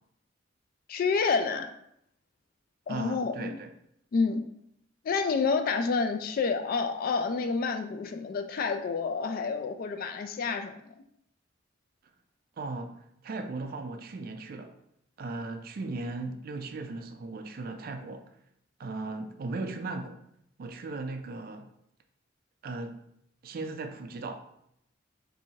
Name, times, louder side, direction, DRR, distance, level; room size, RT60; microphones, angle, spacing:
voice 1, 0.9-1.7 2.9-3.6 4.1-4.5 5.0-10.9, left 4 dB, 50° left, 7 dB, 0.3 m, -29 dB
voice 2, 2.9-3.7 12.6-14.8 15.2-18.3 18.8-20.2 20.6-21.7 22.6-23.0 23.4-24.5, right 3 dB, 50° right, 6 dB, 0.4 m, -37 dB
4.3 x 2.7 x 2.7 m, 0.74 s
head